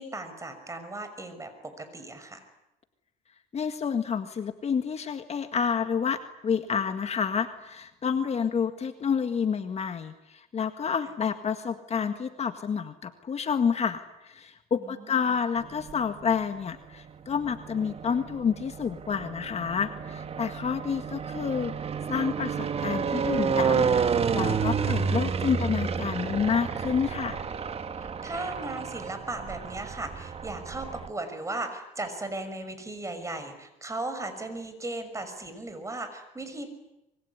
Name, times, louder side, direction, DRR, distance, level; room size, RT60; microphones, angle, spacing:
voice 1, 0.0-2.4 14.8-15.2 28.0-36.7, right 2 dB, 20° right, 8 dB, 6.0 m, -37 dB
voice 2, 3.5-21.7 22.1-27.4, left 6 dB, 40° left, 8 dB, 1.8 m, -29 dB
sound 1, 15.6-16.3 17.1-31.1, right 6 dB, 35° right, 1.7 m, -30 dB
25.5 x 23.0 x 9.9 m, 0.90 s
cardioid pair, 110°, 17 cm